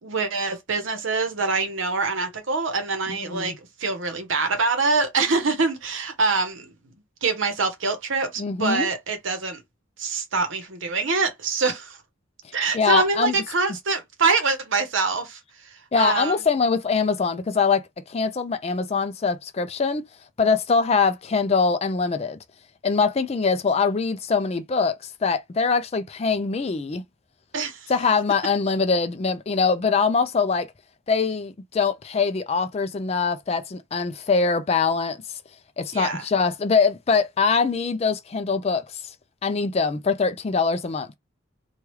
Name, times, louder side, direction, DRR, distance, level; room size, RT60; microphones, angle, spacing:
voice 1, 0.0-3.5 3.8-6.6 7.2-9.6 10.0-12.0 12.5-15.4 15.9-16.3 27.5-27.8 35.9-36.2, right 4 dB, 65° right, 0.8 m, -24 dB
voice 2, 8.4-8.9 12.7-13.3 15.9-20.0 20.4-22.4 22.8-27.0 27.9-30.7 31.1-35.2 35.8-39.1 39.4-41.1, left 5 dB, 30° left, 0.3 m, -23 dB
3.1 x 2.3 x 3.0 m
head